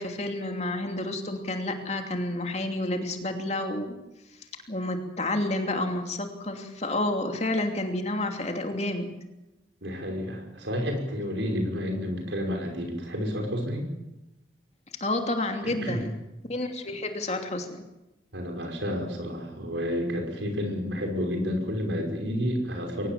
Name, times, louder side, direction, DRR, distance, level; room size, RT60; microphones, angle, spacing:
voice 1, 0.0-4.0 4.7-9.1 15.0-16.1 16.5-17.8, left 1 dB, 35° left, 4 dB, 2.8 m, -30 dB
voice 2, 9.8-13.9 15.6-16.0 18.3-23.1, equal, 85° right, 2 dB, 5.5 m, -30 dB
23.5 x 18.5 x 7.5 m, 0.96 s
head